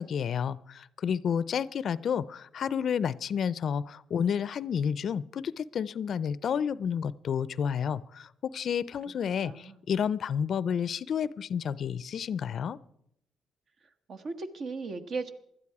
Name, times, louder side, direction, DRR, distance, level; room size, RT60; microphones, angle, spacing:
voice 1, 0.0-12.8, left 7 dB, 60° left, 19 dB, 0.4 m, -30 dB
voice 2, 9.4-9.8 14.1-15.3, right 4 dB, 55° right, 9 dB, 1.2 m, -36 dB
17.0 x 12.0 x 4.8 m, 0.74 s
cardioid pair, 90°, 0 cm